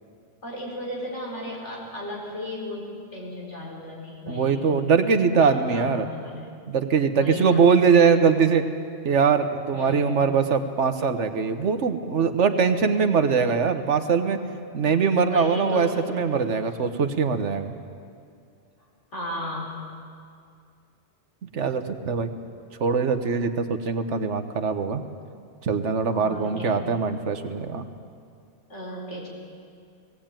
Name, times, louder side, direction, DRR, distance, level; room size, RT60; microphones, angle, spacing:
voice 1, 0.4-4.7 5.4-6.5 7.2-7.7 9.7-10.2 14.9-16.1 19.1-19.7 26.1-26.8 28.7-29.3, left 1 dB, 80° left, -3 dB, 5.0 m, -35 dB
voice 2, 4.3-6.1 6.7-8.6 9.0-14.4 14.7-17.7 21.5-22.3 22.8-25.0 25.6-27.8, right 5 dB, 80° right, 9 dB, 1.4 m, -22 dB
19.0 x 17.0 x 9.0 m, 2.3 s
omnidirectional pair, 1.2 m